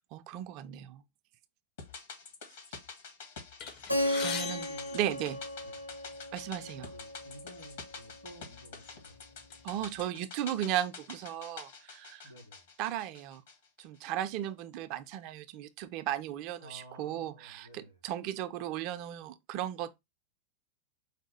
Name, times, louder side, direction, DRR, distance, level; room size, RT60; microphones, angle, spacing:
voice 1, 0.1-1.0 4.1-4.7 4.9-5.4 6.3-6.9 9.6-12.3 12.8-13.4 13.8-20.0, right 12 dB, 45° right, 0.5 m, -36 dB
sound 1, 1.8-14.1 14.4-14.5, left 5 dB, 60° left, 1.3 m, -48 dB
sound 2, 3.6-5.9 6.8-6.9 7.2-7.4 8.2-8.4 8.9-10.1, left 7 dB, 40° left, 0.7 m, -42 dB
Keyboard (musical), 3.9-8.4, left 1 dB, 85° right, 0.6 m, -36 dB
voice 2, 4.3-5.0 5.3-5.9 6.5-9.3 12.2-12.7 16.6-18.0, equal, 75° left, 2.8 m, -54 dB
4.8 x 2.3 x 4.4 m
figure-of-eight pair, 90°, 0 cm